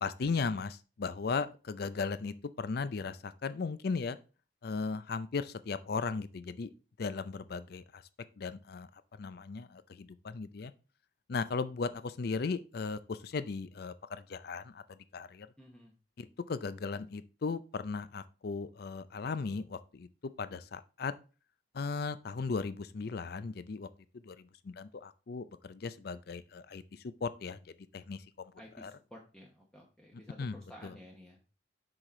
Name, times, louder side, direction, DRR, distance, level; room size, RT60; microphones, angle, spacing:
voice 1, 0.0-4.2 4.6-6.7 7.0-8.0 8.4-8.9 9.2-10.7 11.3-15.5 16.2-20.1 20.4-21.1 21.7-23.9 24.1-27.6 27.9-28.2 28.8-28.9 30.4-30.6 30.8-30.9, left 4 dB, 55° left, 0.4 m, -37 dB
voice 2, 15.6-15.9 28.6-31.4, equal, 5° left, 0.9 m, -53 dB
6.3 x 4.9 x 4.2 m
head